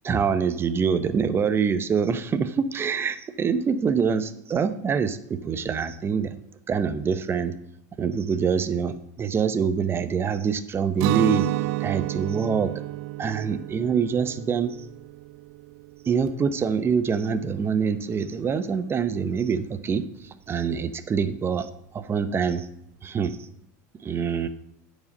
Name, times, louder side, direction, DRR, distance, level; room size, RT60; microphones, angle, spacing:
voice 1, 0.0-6.3 6.7-7.5 8.0-11.5 11.8-12.7 13.2-14.8 16.0-22.7 23.0-23.4 24.0-24.5, right 6 dB, 25° right, 12 dB, 0.8 m, -25 dB
Guitar, 11.0-16.8, right 17 dB, 60° right, 0.5 m, -30 dB
9.3 x 5.1 x 6.6 m, 0.77 s
supercardioid pair, 110°, 9 cm